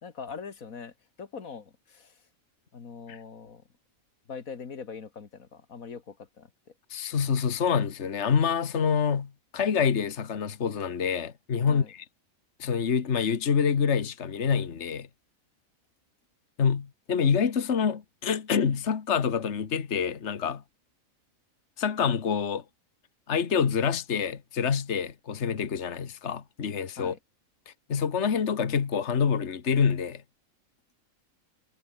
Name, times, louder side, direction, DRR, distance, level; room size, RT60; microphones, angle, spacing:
voice 1, 0.0-2.2 2.7-3.6 4.3-6.5 11.6-11.9 27.0-27.2, left 5 dB, 85° left, 2.3 m, -42 dB
voice 2, 6.9-12.1 12.6-15.1 16.6-20.6 21.8-22.6 23.3-27.1 27.7-30.2, left 6 dB, 55° left, 1.7 m, -27 dB
omnidirectional pair, 1.4 m